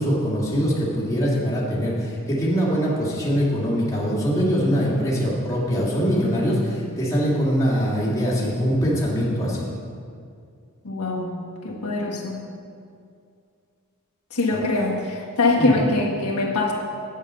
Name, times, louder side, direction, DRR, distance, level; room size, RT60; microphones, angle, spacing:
voice 1, 0.0-9.6 14.5-14.6 15.5-15.8, equal, 15° left, -7 dB, 2.1 m, -23 dB
voice 2, 10.8-11.4 11.6-12.4 14.3-16.7, left 2 dB, 85° left, -3 dB, 1.5 m, -23 dB
8.2 x 7.5 x 5.5 m, 2.3 s
head